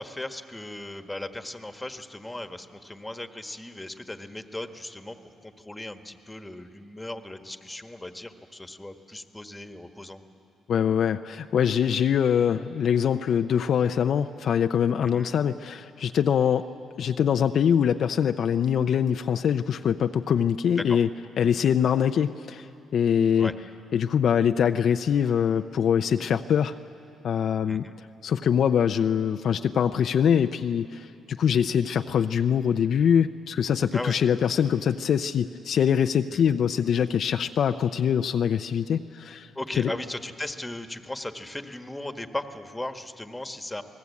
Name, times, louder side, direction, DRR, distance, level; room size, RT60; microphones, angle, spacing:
voice 1, 0.0-5.2 5.4-10.2 15.0-15.3 20.8-21.0 23.4-23.5 27.6-27.9 33.9-34.1 36.3-36.5 39.5-43.8, left 1 dB, 10° left, 7 dB, 1.4 m, -37 dB
voice 2, 10.7-16.7 17.0-21.1 21.4-22.6 22.9-23.5 23.9-26.7 27.2-27.8 28.2-31.1 31.4-39.5 39.8-39.9, left 8 dB, 65° left, 8 dB, 0.5 m, -23 dB
28.0 x 19.5 x 8.4 m, 2.6 s
cardioid pair, 90°, 0 cm